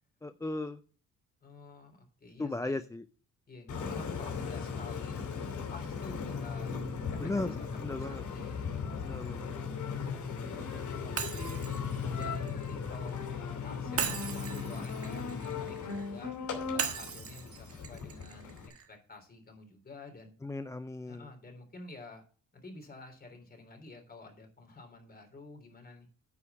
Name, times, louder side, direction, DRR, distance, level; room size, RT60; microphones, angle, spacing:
voice 1, 0.2-0.8 2.4-3.0 7.2-7.5 7.8-8.2 9.0-9.5 20.4-21.3, left 2 dB, 10° left, 11 dB, 0.4 m, -36 dB
voice 2, 1.4-2.8 3.5-5.2 5.4-6.7 7.1-9.2 9.9-10.1 10.5-11.6 12.0-16.3 16.7-18.6 18.9-20.3 21.1-22.2 22.5-26.1, left 2 dB, 30° left, 4 dB, 3.5 m, -50 dB
Engine, 3.7-18.7, left 5 dB, 75° left, 2.9 m, -37 dB
Shatter, 11.2-13.2 14.0-16.1 16.8-18.9, right 7 dB, 50° right, 1.5 m, -38 dB
9.7 x 5.0 x 6.9 m, 0.41 s
cardioid pair, 90°, 30 cm